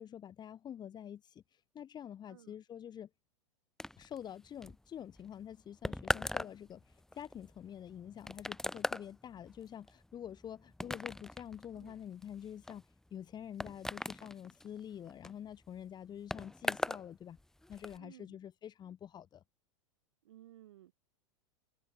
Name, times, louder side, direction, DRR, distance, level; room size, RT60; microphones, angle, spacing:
voice 1, 0.0-3.1 4.0-12.8 13.1-17.4 17.7-19.4, left 9 dB, 25° left, 2.3 m, -47 dB
voice 2, 2.3-2.6 11.7-12.0 18.0-18.4 20.2-20.9, right 13 dB, 60° right, 6.3 m, -57 dB
sound 1, 3.8-17.1 17.3-18.0, left 1 dB, 5° left, 0.5 m, -40 dB
figure-of-eight pair, 90°, 17 cm